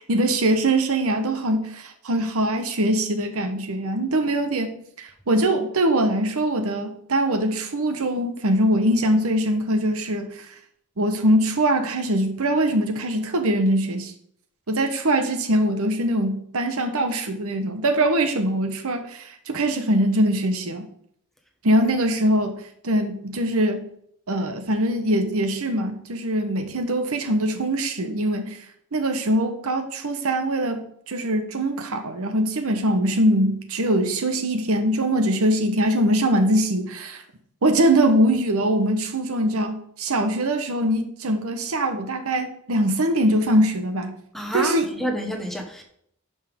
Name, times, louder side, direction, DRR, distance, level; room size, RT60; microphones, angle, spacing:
voice 1, 0.1-10.5 11.0-14.1 14.7-20.9 21.6-22.6 22.8-23.8 24.3-28.6 28.9-37.2 37.6-44.2 44.5-44.9, right 1 dB, 70° right, 7 dB, 1.0 m, -22 dB
voice 2, 44.3-45.8, equal, ahead, 3 dB, 1.2 m, -29 dB
11.0 x 5.5 x 3.6 m, 0.68 s
head